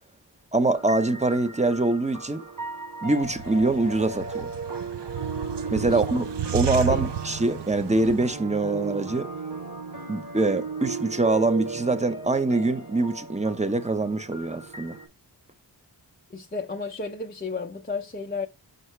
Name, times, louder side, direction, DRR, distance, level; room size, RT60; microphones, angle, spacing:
voice 1, 0.5-2.4 3.0-4.5 5.7-9.3 10.1-15.0, right 2 dB, 15° right, 0.8 m, -24 dB
sound 1, 0.7-15.0, right 4 dB, 45° right, 2.5 m, -36 dB
sound 2, 3.2-8.3, right 11 dB, 75° right, 0.6 m, -33 dB
voice 2, 5.8-6.2 6.9-7.0 16.3-18.5, left 4 dB, 20° left, 0.6 m, -33 dB
5.6 x 5.5 x 3.2 m
wide cardioid pair, 55°, 42 cm